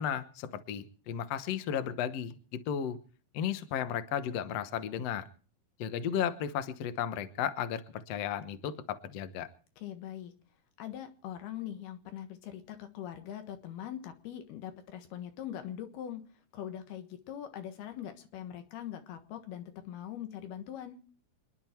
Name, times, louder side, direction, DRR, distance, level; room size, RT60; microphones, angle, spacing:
voice 1, 0.0-3.0 3.3-5.2 5.8-9.5, left 9 dB, 65° left, 10 dB, 1.6 m, -34 dB
voice 2, 9.8-10.3 10.8-16.2 16.5-21.0, left 10 dB, 85° left, 7 dB, 3.4 m, -42 dB
27.0 x 10.5 x 4.5 m, 0.41 s
omnidirectional pair, 4.4 m